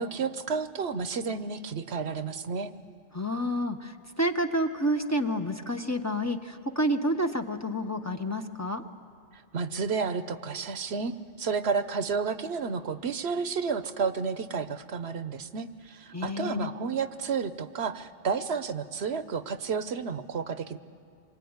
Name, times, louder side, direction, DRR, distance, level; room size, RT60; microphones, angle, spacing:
voice 1, 0.0-2.7 9.3-20.8, right 5 dB, 75° right, 12 dB, 1.1 m, -31 dB
voice 2, 3.1-8.8 16.1-16.7, equal, 15° left, 4 dB, 1.0 m, -29 dB
26.0 x 23.0 x 9.6 m, 2.3 s
omnidirectional pair, 1.1 m